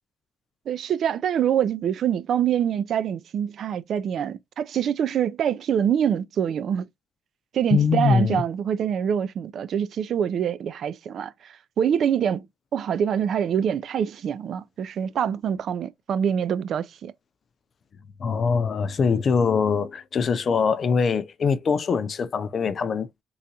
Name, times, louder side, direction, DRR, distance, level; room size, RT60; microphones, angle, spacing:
voice 1, 0.7-6.8 7.5-12.4 12.7-17.1, right 8 dB, 65° right, 0.4 m, -25 dB
voice 2, 7.7-8.4 18.2-23.2, left 5 dB, 50° left, 0.5 m, -23 dB
3.9 x 2.2 x 2.7 m
cardioid pair, 90°, 0 cm